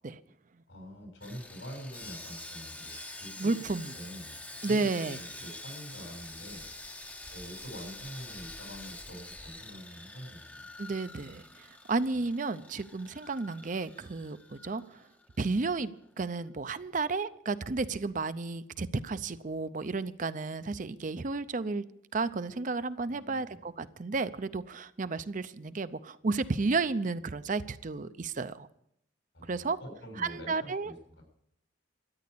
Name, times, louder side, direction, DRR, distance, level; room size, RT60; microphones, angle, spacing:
voice 1, 0.7-2.9 3.2-3.5 3.9-4.3 4.7-6.7 7.3-10.7 23.1-23.6 29.3-31.2, equal, 85° left, 2 dB, 6.8 m, -45 dB
Sawing, 1.2-15.5 15.7-15.9 16.4-16.5, left 2 dB, 10° left, 0.7 m, -46 dB
voice 2, 3.4-3.9 4.6-5.2 10.8-15.0 15.4-21.8 22.1-28.7 29.5-29.8 30.2-30.9, right 3 dB, 40° right, 13 dB, 0.5 m, -32 dB
13.5 x 9.5 x 8.4 m, 0.75 s
head